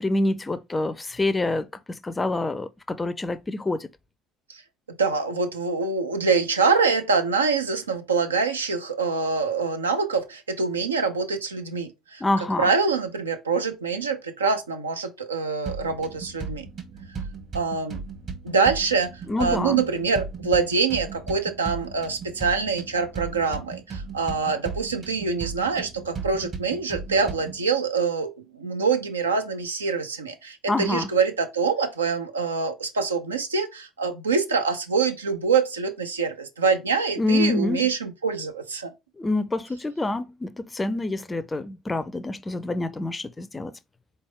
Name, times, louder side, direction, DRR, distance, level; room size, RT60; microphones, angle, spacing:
voice 1, 0.0-3.9 12.2-12.7 19.3-19.8 30.7-31.1 37.2-37.9 39.2-43.7, left 2 dB, 15° left, 0.4 m, -26 dB
voice 2, 5.0-16.7 17.5-18.0 18.4-19.1 19.4-38.9, right 5 dB, 80° right, 0.5 m, -25 dB
sound 1, 15.7-27.7, right 5 dB, 40° right, 1.3 m, -36 dB
4.1 x 3.4 x 3.3 m
figure-of-eight pair, 60°, 0 cm